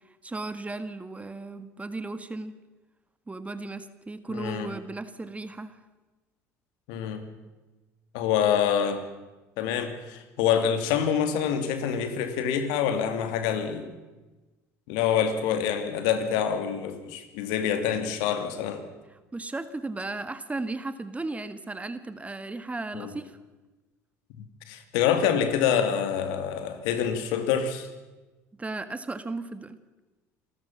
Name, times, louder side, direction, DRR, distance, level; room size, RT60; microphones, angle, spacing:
voice 1, 0.2-2.6 3.3-5.8 19.3-23.4 28.6-29.8, right 2 dB, 15° right, 12 dB, 1.7 m, -35 dB
voice 2, 4.3-4.7 6.9-7.2 8.1-9.0 9.6-13.9 14.9-18.8 22.9-23.1 24.4-27.9, left 8 dB, 75° left, 9 dB, 2.4 m, -26 dB
28.0 x 13.5 x 7.4 m, 1.2 s
hypercardioid pair, 75°, 8 cm